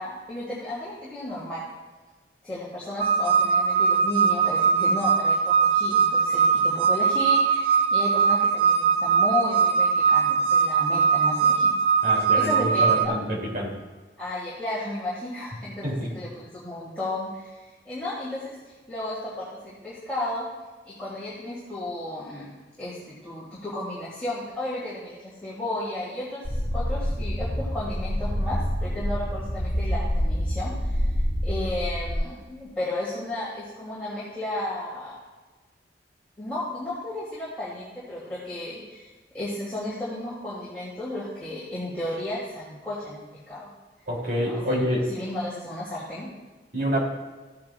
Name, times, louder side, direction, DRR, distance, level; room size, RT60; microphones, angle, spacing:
voice 1, 0.0-1.6 2.4-13.1 14.2-15.8 16.1-20.5 20.8-22.5 22.8-31.0 31.4-35.2 36.4-43.7 44.4-44.8 45.1-46.3, left 1 dB, 5° left, -10 dB, 2.9 m, -33 dB
sound 1, 3.0-13.1, right 6 dB, 35° right, 0.6 m, -21 dB
voice 2, 12.0-13.7 15.8-16.1 44.1-45.0 46.7-47.0, equal, 55° right, -2 dB, 3.0 m, -27 dB
sound 2, 26.4-32.2, equal, 50° left, 1.8 m, -27 dB
15.0 x 9.3 x 2.4 m, 1.3 s
head